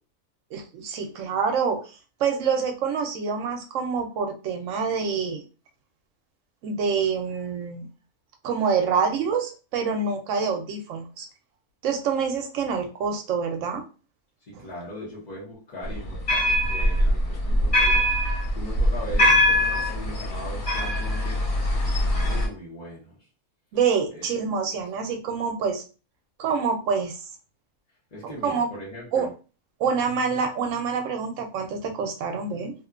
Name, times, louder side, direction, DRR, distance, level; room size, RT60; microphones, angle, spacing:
voice 1, 0.5-1.8 2.2-5.4 6.6-7.9 8.4-11.3 11.8-13.8 14.5-14.6 23.7-25.8 26.4-27.2 28.4-28.7 29.1-29.3 29.8-32.7, right 6 dB, 70° right, 5 dB, 0.9 m, -26 dB
voice 2, 14.4-21.5 21.8-23.3 24.1-24.3 28.1-29.3 30.3-30.4, left 1 dB, 40° left, -6 dB, 0.7 m, -40 dB
sound 1, 15.9-22.5, left 1 dB, 75° left, 1.6 m, -22 dB
2.7 x 2.1 x 2.3 m, 0.34 s
omnidirectional pair, 1.4 m